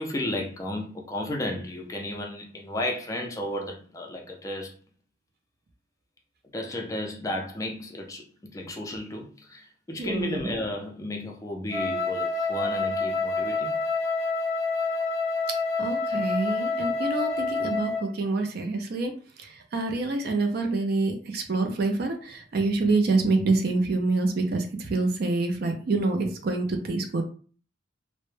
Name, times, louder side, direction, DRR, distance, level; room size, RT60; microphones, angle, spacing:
voice 1, 0.0-4.7 6.5-13.8, left 1 dB, 15° left, 0.3 m, -33 dB
voice 2, 10.0-10.5 15.8-19.1 19.4-27.2, right 3 dB, 55° right, 0.4 m, -26 dB
Wind instrument woodwind instrument, 11.7-18.1, left 3 dB, 85° left, 0.4 m, -28 dB
2.1 x 2.0 x 3.0 m
head